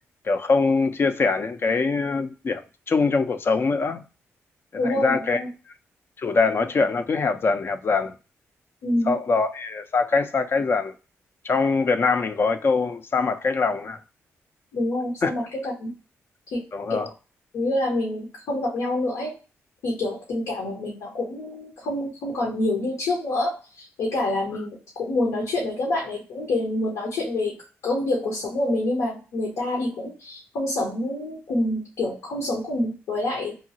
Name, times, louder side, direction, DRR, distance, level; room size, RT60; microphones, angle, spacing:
voice 1, 0.3-2.6 2.9-4.0 4.8-5.4 6.2-8.1 9.1-10.9 11.4-14.0 15.2-15.3 16.7-17.1, left 4 dB, 45° left, 0.4 m, -23 dB
voice 2, 4.8-5.5 8.8-9.1 14.7-15.9 16.5-16.6 16.9-17.1 17.5-19.3 19.8-27.5 27.8-33.6, left 1 dB, 85° left, 0.9 m, -27 dB
2.9 x 2.3 x 2.6 m
cardioid pair, 70°, 6 cm